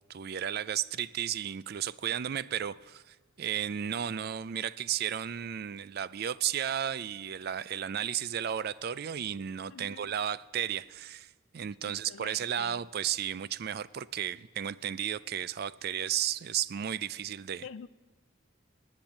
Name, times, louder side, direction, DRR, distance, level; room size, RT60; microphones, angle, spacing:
voice 1, 0.1-17.7, right 9 dB, 50° right, 0.4 m, -34 dB
voice 2, 9.7-10.1 11.8-12.8 17.6-17.9, left 6 dB, 85° left, 0.4 m, -47 dB
18.0 x 8.9 x 7.3 m
head